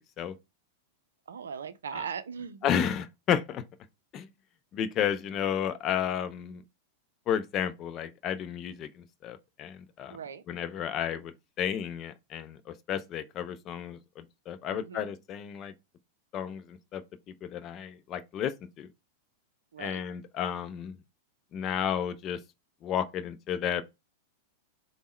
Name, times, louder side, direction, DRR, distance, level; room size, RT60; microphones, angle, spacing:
voice 1, 1.3-2.8 10.1-10.4 14.7-15.1 19.7-20.0, right 6 dB, 75° right, 0.4 m, -39 dB
voice 2, 2.6-3.6 4.1-4.3 4.7-6.6 7.3-10.2 10.5-15.7 16.3-17.0 17.3-18.9 19.8-21.0 21.5-22.4 22.8-23.8, left 9 dB, 35° left, 0.4 m, -32 dB
3.5 x 2.1 x 4.2 m
figure-of-eight pair, 95°, 0 cm